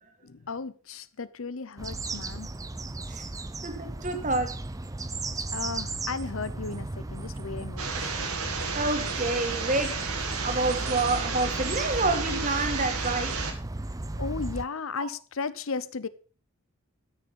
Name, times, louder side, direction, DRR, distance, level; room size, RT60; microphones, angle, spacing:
voice 1, 0.2-2.5 5.5-8.1 14.2-16.1, left 4 dB, 65° left, 0.7 m, -35 dB
sound 1, 1.8-14.6, right 2 dB, 15° right, 0.5 m, -35 dB
voice 2, 3.6-4.6 8.7-10.1 10.4-13.4 15.0-15.1, right 2 dB, 35° right, 1.8 m, -28 dB
sound 2, 7.8-13.5, right 5 dB, 85° right, 2.2 m, -32 dB
13.5 x 6.9 x 5.4 m
head